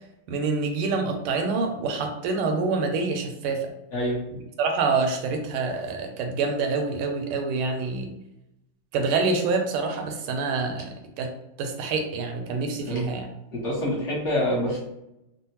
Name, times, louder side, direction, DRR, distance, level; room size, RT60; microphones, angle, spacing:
voice 1, 0.3-3.7 4.6-8.1 8.9-11.3 11.6-13.3, right 4 dB, 85° right, 4 dB, 1.5 m, -26 dB
voice 2, 3.9-4.2 12.7-13.1 13.5-14.8, left 1 dB, 55° left, -6 dB, 0.8 m, -26 dB
3.7 x 2.0 x 2.8 m, 0.85 s
omnidirectional pair, 2.4 m